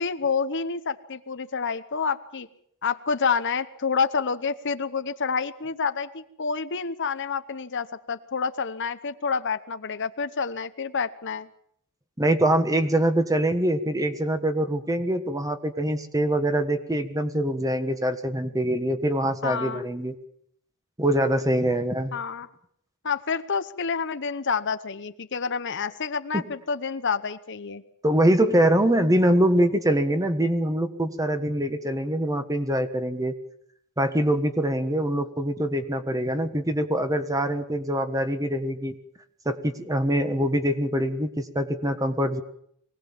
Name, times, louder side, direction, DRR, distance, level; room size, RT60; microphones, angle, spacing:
voice 1, 0.0-2.5 2.8-11.5 19.4-19.8 22.1-22.5 23.0-27.8, left 5 dB, 55° left, 11 dB, 0.9 m, -28 dB
voice 2, 12.2-20.1 21.0-22.1 26.3-26.4 28.0-33.3 34.0-39.0 39.4-42.4, right 1 dB, 15° right, 8 dB, 1.4 m, -24 dB
23.5 x 18.0 x 7.4 m, 0.69 s
head